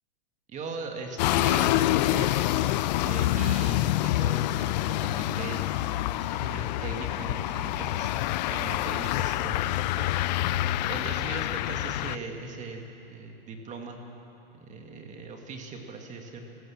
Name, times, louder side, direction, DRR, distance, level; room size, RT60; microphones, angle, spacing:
voice 1, 0.5-5.6 6.1-8.1 8.5-10.1 10.9-12.8 13.1-14.0 14.5-16.4, right 3 dB, 20° right, 3 dB, 2.1 m, -39 dB
sound 1, 1.2-12.2, left 15 dB, 40° left, 0.6 m, -27 dB
24.0 x 16.5 x 7.3 m, 2.9 s
hypercardioid pair, 140°, 33 cm